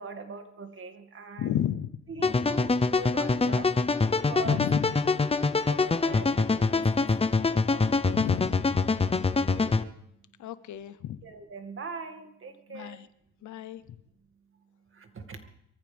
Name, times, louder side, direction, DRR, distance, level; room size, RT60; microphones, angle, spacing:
voice 1, 0.0-1.5 2.1-3.9 4.1-4.6 5.0-8.2 9.5-9.8 11.2-13.0 14.9-15.5, right 4 dB, 45° right, 6 dB, 2.3 m, -42 dB
voice 2, 1.4-2.0 4.4-5.0 8.1-8.6 10.4-11.2 12.7-13.1 13.4-13.8, left 11 dB, 75° left, 15 dB, 0.9 m, -32 dB
sound 1, 2.2-9.8, left 4 dB, 20° left, 0.8 m, -25 dB
24.0 x 14.5 x 3.5 m, 0.77 s
cardioid pair, 90°, 30 cm